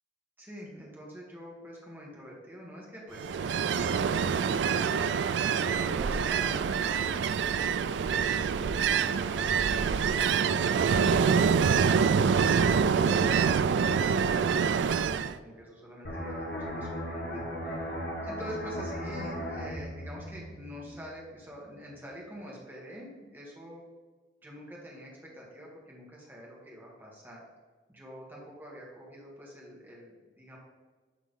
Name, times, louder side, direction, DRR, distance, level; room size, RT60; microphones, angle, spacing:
voice 1, 0.4-4.8 5.3-7.7 12.3-23.8 24.4-27.4 27.9-30.6, equal, 10° right, -4 dB, 1.8 m, -46 dB
Ocean, 3.2-15.3, right 6 dB, 90° right, 0.3 m, -26 dB
sound 1, 16.0-21.4 21.8-22.0, equal, 55° left, 1.3 m, -37 dB
11.0 x 3.7 x 3.7 m, 1.4 s
head